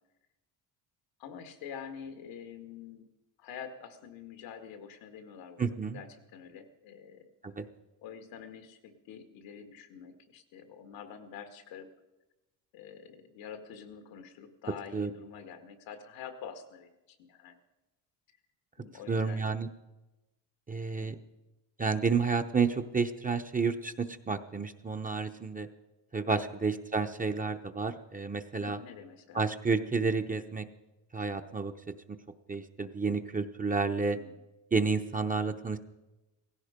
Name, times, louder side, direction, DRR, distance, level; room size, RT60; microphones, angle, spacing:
voice 1, 1.2-3.1 3.4-6.1 6.3-7.3 8.0-11.9 12.7-17.6 18.8-19.5 20.9-21.2 26.6-26.7 28.6-29.5 34.0-34.4, left 7 dB, 90° left, 8 dB, 1.9 m, -47 dB
voice 2, 5.6-6.0 7.4-7.7 14.9-15.1 19.1-19.7 20.7-21.2 21.8-25.7 26.1-28.8 29.3-30.7 31.1-31.7 32.5-34.2 34.7-35.8, right 4 dB, 20° right, 6 dB, 0.7 m, -30 dB
17.5 x 15.5 x 5.1 m, 1.0 s
cardioid pair, 115°, 43 cm